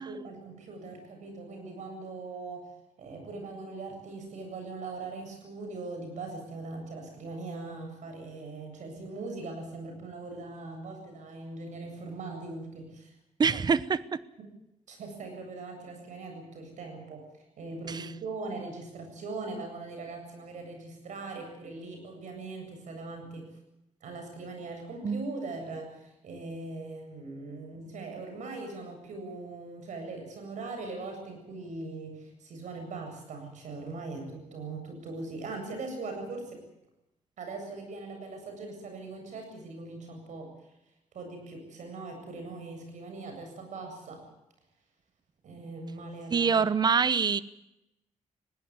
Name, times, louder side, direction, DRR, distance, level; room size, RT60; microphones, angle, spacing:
voice 1, 0.0-2.7 3.0-13.1 14.9-23.5 24.0-36.6 37.4-40.5 41.1-44.3 45.4-46.5, right 3 dB, 75° right, 4 dB, 7.9 m, -40 dB
voice 2, 13.4-14.2 17.9-18.1 25.0-25.2 46.3-47.4, right 6 dB, 35° right, 17 dB, 0.8 m, -25 dB
20.5 x 17.5 x 9.6 m, 0.87 s
wide cardioid pair, 155°, 13 cm